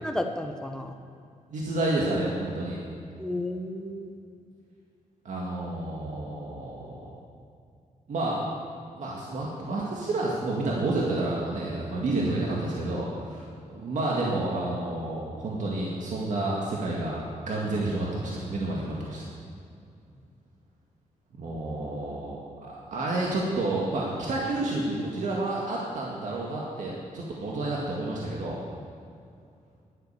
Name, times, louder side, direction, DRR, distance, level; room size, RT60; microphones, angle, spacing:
voice 1, 0.0-0.9 3.2-4.2 13.6-13.7, left 1 dB, 5° left, 4 dB, 1.0 m, -33 dB
voice 2, 1.5-2.8 5.2-7.1 8.1-8.4 9.0-17.2 17.5-19.3 21.4-28.6, right 2 dB, 65° right, -4 dB, 2.0 m, -30 dB
11.0 x 9.3 x 6.8 m, 2.4 s
wide cardioid pair, 120°, 14 cm